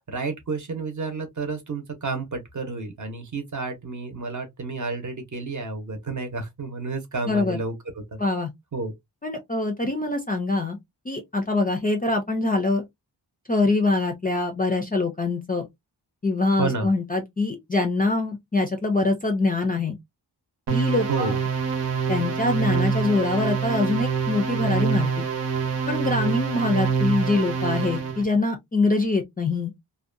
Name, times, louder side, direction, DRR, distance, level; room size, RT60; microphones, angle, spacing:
voice 1, 0.1-8.2 8.7-8.9 16.6-16.9 21.1-21.4, right 3 dB, 45° right, 0.7 m, -30 dB
voice 2, 7.3-7.6 8.2-8.5 9.2-10.8 11.1-12.8 13.5-15.7 16.2-20.0 20.7-21.4 22.1-25.3 25.9-29.7, left 2 dB, 20° left, 0.4 m, -24 dB
sound 1, 20.7-28.2, right 5 dB, 90° right, 1.0 m, -25 dB
2.6 x 2.2 x 2.4 m
wide cardioid pair, 145°, 42 cm